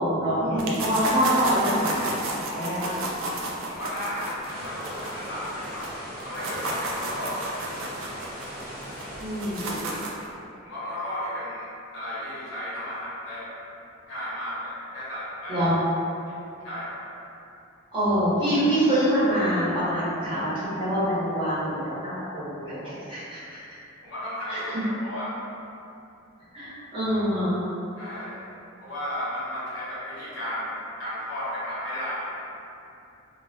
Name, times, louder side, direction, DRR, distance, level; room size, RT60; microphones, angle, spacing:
voice 1, 0.0-2.9 9.2-9.9 15.5-15.7 17.9-23.6 24.5-24.8 26.5-27.6, equal, 25° right, -13 dB, 0.9 m, -25 dB
sound 1, 0.6-5.9 6.2-10.3, right 1 dB, 75° right, 0.4 m, -32 dB
voice 2, 3.6-7.8 10.6-13.6 14.1-15.7 16.3-16.4 16.6-17.0 24.0-25.4 28.0-28.4 28.8-32.4, equal, 70° left, -10 dB, 0.8 m, -34 dB
sound 2, 4.4-9.8, equal, 5° right, 1.1 m, -39 dB
2.2 x 2.1 x 2.6 m, 2.7 s
head